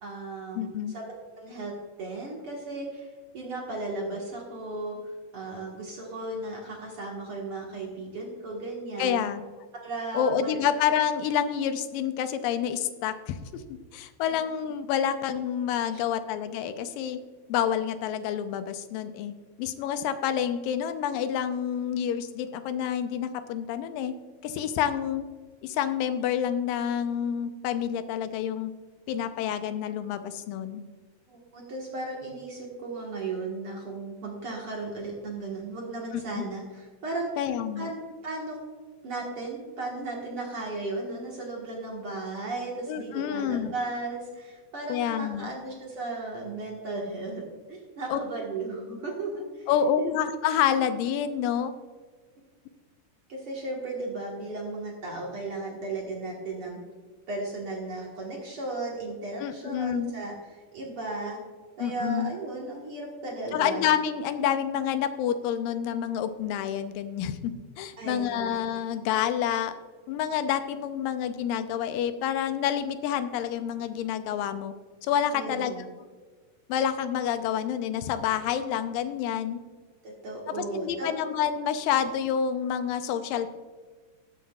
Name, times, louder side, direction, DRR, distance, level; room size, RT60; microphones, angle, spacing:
voice 1, 0.0-3.1 3.3-9.2 9.8-10.6 14.2-14.3 15.9-16.0 31.3-37.3 37.8-38.6 39.0-49.7 50.0-50.1 53.3-56.8 57.3-61.4 61.8-63.8 68.0-68.5 75.3-75.9 80.0-81.3, right 2 dB, 50° right, -2 dB, 2.0 m, -35 dB
voice 2, 0.6-1.0 9.0-9.4 10.1-17.2 17.5-24.1 24.4-25.3 25.6-28.7 29.1-30.8 36.1-36.4 37.4-37.9 42.9-43.7 44.9-45.5 48.1-48.2 49.7-51.7 59.4-60.1 61.8-62.3 63.5-69.7 70.1-74.7 75.0-75.7 76.7-79.6 80.6-83.5, left 9 dB, 90° left, 10 dB, 2.4 m, -28 dB
19.5 x 7.5 x 2.4 m, 1.5 s
omnidirectional pair, 3.9 m